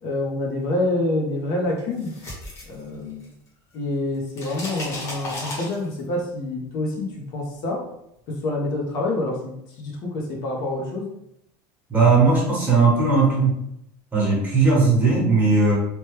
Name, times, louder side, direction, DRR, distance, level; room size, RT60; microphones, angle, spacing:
voice 1, 0.0-2.1 2.7-3.2 3.7-7.8 8.3-11.1, left 2 dB, 50° left, -1 dB, 0.7 m, -27 dB
sound 1, 1.8-3.5 3.7-6.2, left 1 dB, 30° left, 1.0 m, -35 dB
voice 2, 11.9-13.6 14.1-15.7, right 4 dB, 20° right, -5 dB, 1.1 m, -18 dB
2.9 x 2.2 x 3.2 m, 0.79 s
cardioid pair, 155°, 9 cm